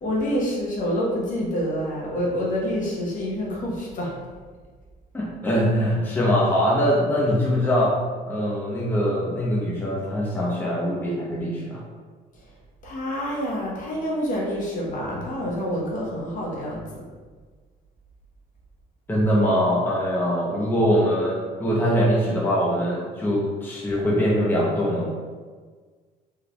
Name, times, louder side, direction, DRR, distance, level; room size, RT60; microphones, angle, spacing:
voice 1, 0.0-4.1 12.8-17.0, equal, 50° left, -3 dB, 1.0 m, -27 dB
voice 2, 5.1-7.9 8.3-11.8 19.1-25.1, equal, 10° left, -5 dB, 0.7 m, -22 dB
3.8 x 3.3 x 2.3 m, 1.5 s
cardioid pair, 110°, 17 cm